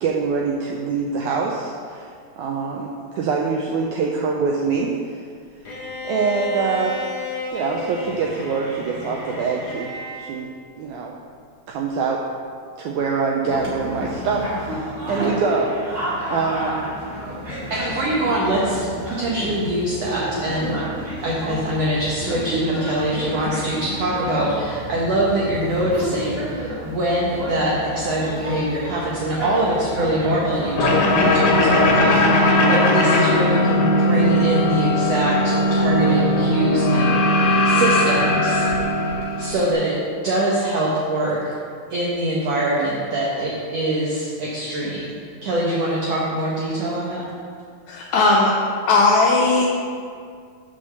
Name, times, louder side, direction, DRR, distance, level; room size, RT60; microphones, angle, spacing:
voice 1, 0.0-2.1 2.4-5.2 6.0-7.2 7.5-9.9 10.2-10.5 10.8-11.1 11.7-12.2 12.8-16.9, right 5 dB, 90° right, -1 dB, 1.7 m, -24 dB
Bowed string instrument, 5.6-10.3, left 3 dB, 35° left, 1.8 m, -32 dB
sound 1, 13.4-32.2, equal, 25° right, 2.0 m, -30 dB
voice 2, 17.7-18.9 19.2-38.7 39.4-40.0 40.2-41.5 41.9-47.2, right 1 dB, 65° right, -5 dB, 1.6 m, -23 dB
sound 2, 30.7-39.7, left 1 dB, 65° left, 2.3 m, -18 dB
voice 3, 47.9-48.5 48.9-49.7, left 3 dB, 85° left, -2 dB, 1.7 m, -17 dB
6.3 x 5.6 x 6.8 m, 2.1 s
omnidirectional pair, 4.1 m